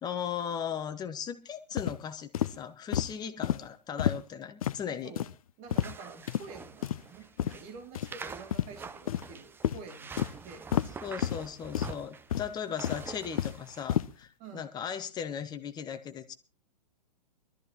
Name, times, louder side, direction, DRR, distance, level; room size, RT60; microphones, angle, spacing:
voice 1, 0.0-5.1 11.0-16.3, left 8 dB, 20° left, 9 dB, 1.4 m, -37 dB
sound 1, 1.8-2.0 2.3-2.5 2.9-3.1 3.4-3.6 4.0-4.2 4.6-4.8 5.2-5.3 5.7-6.0 6.3-6.4 6.8-7.0 7.4-7.5 8.0-8.1 8.5-8.7 9.1-9.3 9.6-9.8 10.2-10.3 10.7-10.9 11.2-11.4 11.7-11.9 12.3-12.5 12.8-13.6 13.9-14.1, left 11 dB, 55° left, 0.6 m, -29 dB
voice 2, 5.6-10.7 14.4-14.7, right 4 dB, 35° right, 5 dB, 2.7 m, -48 dB
sound 2, 5.7-14.0, right 5 dB, 10° right, 0.6 m, -46 dB
22.0 x 13.5 x 3.0 m, 0.32 s
figure-of-eight pair, 110°, 21 cm